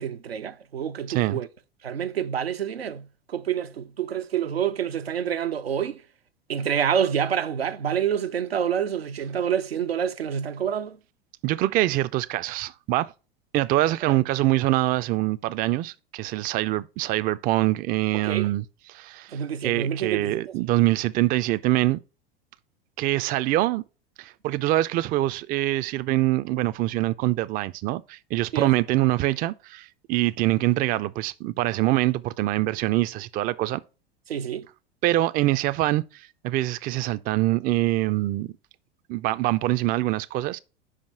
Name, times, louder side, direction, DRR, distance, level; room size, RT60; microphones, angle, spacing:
voice 1, 0.0-1.5 1.8-6.0 6.5-11.0 18.2-18.5 19.3-20.4 28.5-28.7 34.3-34.7, right 8 dB, 90° right, 0.6 m, -27 dB
voice 2, 1.1-1.4 11.4-13.1 13.5-18.6 18.9-22.0 23.0-23.8 24.2-33.8 35.0-38.5 39.1-40.6, right 16 dB, 30° right, 0.4 m, -24 dB
5.2 x 5.0 x 5.4 m
hypercardioid pair, 85°, 30 cm